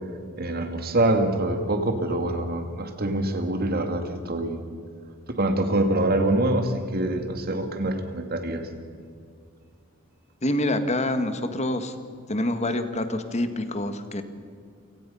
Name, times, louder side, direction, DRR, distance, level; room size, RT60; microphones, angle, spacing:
voice 1, 0.4-4.6 5.3-8.7, right 1 dB, 45° right, 7 dB, 2.2 m, -25 dB
voice 2, 10.4-11.9 12.3-14.2, left 1 dB, 30° left, 9 dB, 1.6 m, -26 dB
28.5 x 18.0 x 5.6 m, 2.2 s
head